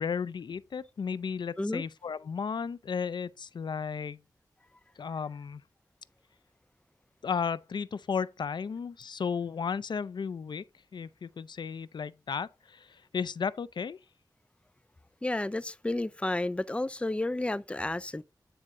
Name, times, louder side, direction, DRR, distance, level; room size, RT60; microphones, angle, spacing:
voice 1, 0.0-4.2 5.0-5.6 7.2-10.6 10.9-14.0, left 6 dB, 80° left, 0.4 m, -34 dB
voice 2, 15.2-18.2, left 2 dB, 15° left, 0.4 m, -31 dB
9.2 x 3.6 x 4.3 m
wide cardioid pair, 60°, 8 cm